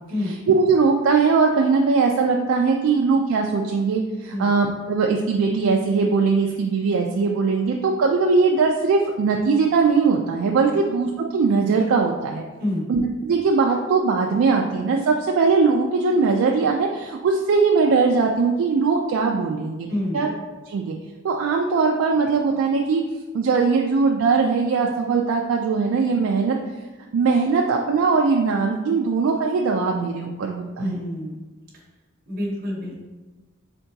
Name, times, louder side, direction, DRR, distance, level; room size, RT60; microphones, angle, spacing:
voice 1, 0.3-12.4 12.9-19.9 20.1-20.3 20.7-21.0 21.2-23.0 23.3-26.6 27.1-31.0, right 4 dB, 75° right, 1 dB, 0.3 m, -20 dB
voice 2, 19.9-20.2 30.8-31.4 32.3-33.0, left 1 dB, 50° right, -3 dB, 0.9 m, -27 dB
3.7 x 3.4 x 2.7 m, 1.2 s
head